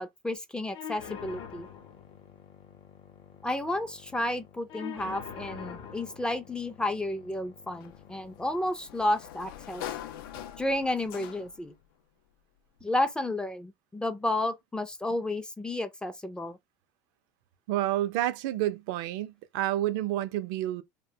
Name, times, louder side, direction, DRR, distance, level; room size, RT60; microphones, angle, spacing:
voice 1, 0.0-1.7 3.4-9.8 10.6-11.7 12.8-16.6, left 1 dB, 5° left, 0.3 m, -31 dB
sound 1, 0.7-8.7, left 8 dB, 50° left, 0.7 m, -45 dB
Sliding door, 7.8-11.7, left 11 dB, 85° left, 0.4 m, -43 dB
voice 2, 17.7-20.8, right 14 dB, 70° right, 0.4 m, -29 dB
2.7 x 2.1 x 2.6 m
supercardioid pair, 125°, 11 cm